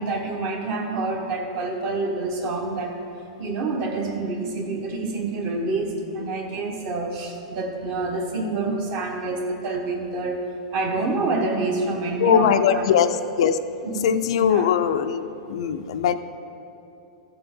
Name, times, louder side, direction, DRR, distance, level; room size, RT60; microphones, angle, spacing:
voice 1, 0.0-3.0 3.4-10.4 10.7-12.8 13.8-14.0 14.3-14.7, right 3 dB, 30° right, 3 dB, 1.1 m, -27 dB
voice 2, 12.2-13.1 13.4-13.6 14.0-16.1, left 9 dB, 60° left, 9 dB, 0.4 m, -20 dB
14.0 x 6.7 x 3.7 m, 2.9 s
supercardioid pair, 170°, 3 cm